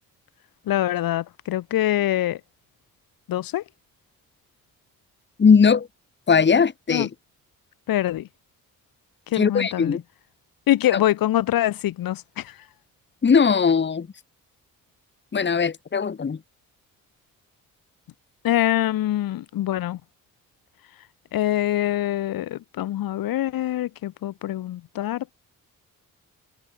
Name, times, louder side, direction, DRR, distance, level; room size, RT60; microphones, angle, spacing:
voice 1, 0.7-2.4 3.3-3.6 6.9-7.1 7.9-8.3 9.3-10.0 10.7-12.6 18.4-20.0 21.3-25.3, left 13 dB, 80° left, 1.6 m, -24 dB
voice 2, 5.4-5.9 6.3-7.1 9.3-10.0 10.9-11.0 13.2-14.1 15.3-16.4, left 6 dB, 30° left, 1.6 m, -19 dB
cardioid pair, 100°, 34 cm